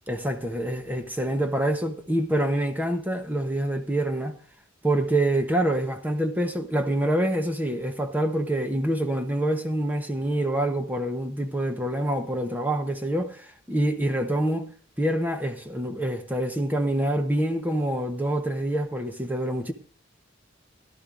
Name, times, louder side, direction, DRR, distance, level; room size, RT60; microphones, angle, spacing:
voice 1, 0.1-4.4 4.8-19.7, right 1 dB, 10° right, 0.9 m, -26 dB
17.0 x 11.5 x 2.5 m
head